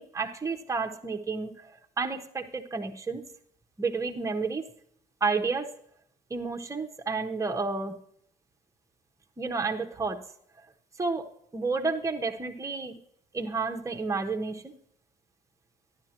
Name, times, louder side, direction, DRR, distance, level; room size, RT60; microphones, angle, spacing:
voice 1, 0.0-3.2 3.8-4.6 5.2-5.7 6.3-8.0 9.4-10.2 11.0-13.0 13.3-14.7, right 4 dB, 20° right, 3 dB, 1.1 m, -31 dB
12.0 x 11.0 x 3.0 m, 0.69 s
cardioid pair, 110°, 17 cm